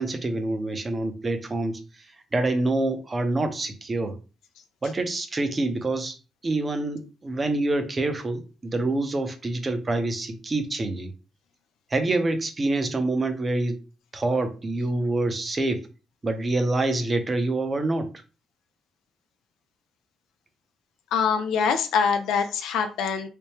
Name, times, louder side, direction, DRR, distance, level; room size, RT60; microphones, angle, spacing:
voice 1, 0.0-2.1 2.3-4.2 4.8-6.2 6.4-11.1 11.9-13.8 14.1-15.9 16.2-18.1, right 2 dB, 30° right, 0.7 m, -26 dB
voice 2, 21.1-23.3, left 6 dB, 85° left, 0.4 m, -24 dB
3.4 x 2.2 x 4.3 m
cardioid pair, 90°, 0 cm